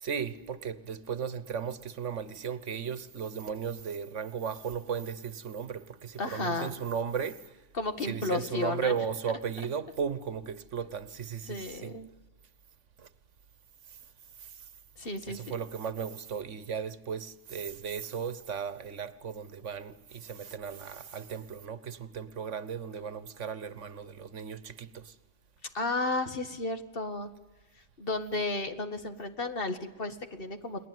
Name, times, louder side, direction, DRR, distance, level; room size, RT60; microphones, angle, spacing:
voice 1, 0.0-7.4 8.1-11.9 13.0-13.1 15.3-25.1, right 7 dB, 75° right, 1.5 m, -36 dB
voice 2, 6.2-6.8 7.7-9.0 9.3-9.4 11.5-12.1 15.0-15.5 25.7-27.3 28.0-30.9, left 2 dB, 50° left, 2.0 m, -33 dB
29.5 x 21.0 x 9.5 m
omnidirectional pair, 1.3 m